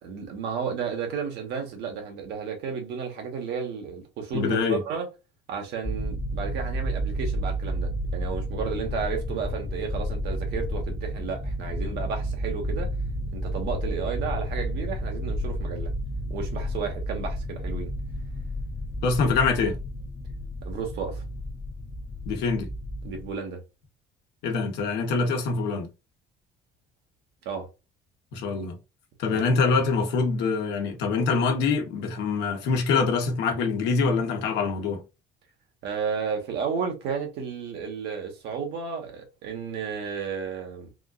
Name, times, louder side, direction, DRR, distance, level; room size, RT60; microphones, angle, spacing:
voice 1, 0.0-5.1 5.5-12.9 13.3-15.9 16.3-17.9 20.6-21.2 23.0-23.6 27.4-27.7 29.3-29.4 35.8-40.9, right 6 dB, 80° right, 1.2 m, -32 dB
voice 2, 4.3-4.8 19.0-19.8 22.3-22.7 24.4-25.9 28.3-28.8 29.2-35.0, left 4 dB, 90° left, 1.0 m, -24 dB
sound 1, 5.9-23.3, equal, 10° left, 0.3 m, -31 dB
3.6 x 2.4 x 2.3 m
cardioid pair, 110°, 17 cm